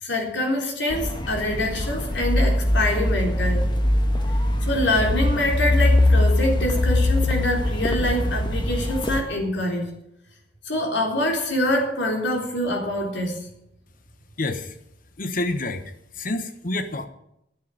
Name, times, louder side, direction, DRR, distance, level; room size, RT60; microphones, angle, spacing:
voice 1, 0.0-3.6 4.6-9.9 10.7-13.4, left 1 dB, 75° left, 1 dB, 3.9 m, -25 dB
sound 1, 0.9-9.2, left 1 dB, 25° left, 1.5 m, -22 dB
voice 2, 14.4-14.8 15.2-17.1, left 2 dB, 50° left, 8 dB, 1.1 m, -28 dB
11.0 x 7.8 x 9.9 m, 0.79 s
head